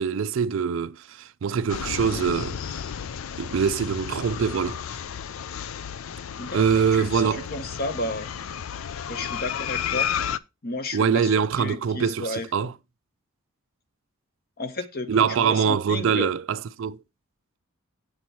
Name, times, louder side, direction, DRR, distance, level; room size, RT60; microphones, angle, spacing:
voice 1, 0.0-2.9 3.4-4.8 6.5-7.5 10.9-12.7 15.1-17.0, right 6 dB, 60° right, 0.4 m, -24 dB
sound 1, 1.7-10.4, left 8 dB, 70° left, 0.4 m, -32 dB
voice 2, 6.4-8.3 9.1-10.1 10.6-12.5 14.6-16.3, left 2 dB, 45° left, 1.0 m, -33 dB
7.9 x 6.1 x 4.3 m
head